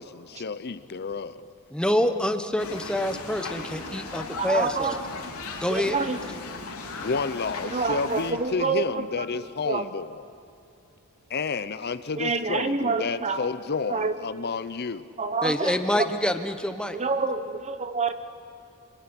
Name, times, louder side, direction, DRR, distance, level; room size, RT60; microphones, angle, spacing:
voice 1, 0.0-1.4 7.0-10.2 11.3-15.1, left 4 dB, 50° left, 12 dB, 0.7 m, -31 dB
voice 2, 1.7-4.9 5.6-6.0 15.4-17.0, left 1 dB, 5° left, 7 dB, 1.2 m, -26 dB
sound 1, 2.6-8.3, left 3 dB, 80° left, 3.5 m, -37 dB
voice 3, 4.4-5.1 5.7-6.2 7.7-9.9 12.2-13.5 13.9-14.2 15.2-16.1 16.9-18.1, right 4 dB, 30° right, 10 dB, 1.2 m, -28 dB
25.5 x 22.5 x 9.8 m, 2.4 s
head